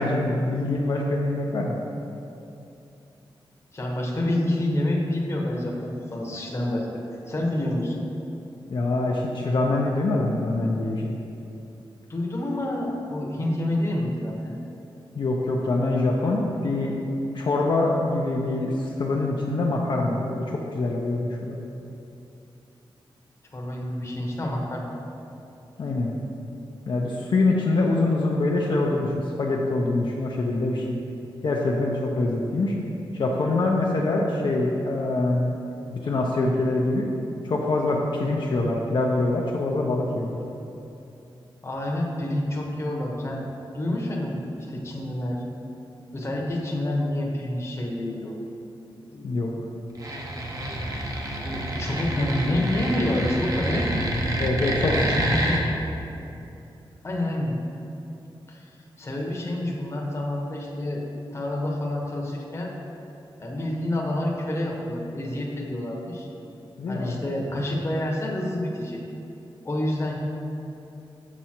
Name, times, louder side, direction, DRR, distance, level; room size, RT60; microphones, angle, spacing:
voice 1, 0.0-1.8 8.7-11.2 15.1-16.9 17.3-21.6 25.8-26.1 26.9-29.1 29.4-30.9 31.4-32.7 33.1-35.6 35.9-37.1 37.4-40.4 49.2-49.5 54.4-54.9 66.8-67.2, left 2 dB, 60° left, -2 dB, 0.7 m, -24 dB
voice 2, 3.7-6.9 7.3-8.1 12.1-14.6 23.5-25.0 41.6-43.5 43.7-44.4 44.7-45.4 46.1-48.4 49.1-49.6 51.4-54.0 54.8-55.7 57.0-57.6 58.5-58.6 59.0-61.0 61.3-62.7 63.4-66.3 66.9-69.0 69.6-70.2, left 1 dB, 30° left, -1 dB, 1.0 m, -28 dB
sound 1, 49.9-55.6, right 1 dB, 40° right, 0.8 m, -28 dB
6.7 x 6.1 x 4.4 m, 2.8 s
wide cardioid pair, 140°, 9 cm